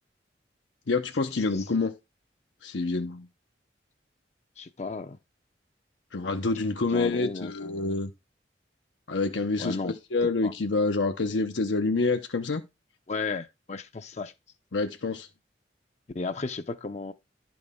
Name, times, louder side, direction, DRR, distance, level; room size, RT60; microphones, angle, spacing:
voice 1, 0.9-2.0 2.6-3.3 6.1-8.1 9.1-12.6 14.7-15.3, left 3 dB, 85° left, 0.8 m, -27 dB
voice 2, 4.6-5.2 6.9-8.0 9.6-10.0 10.4-10.5 13.1-14.3 16.1-17.1, left 3 dB, 40° left, 0.5 m, -34 dB
11.0 x 6.1 x 3.6 m
head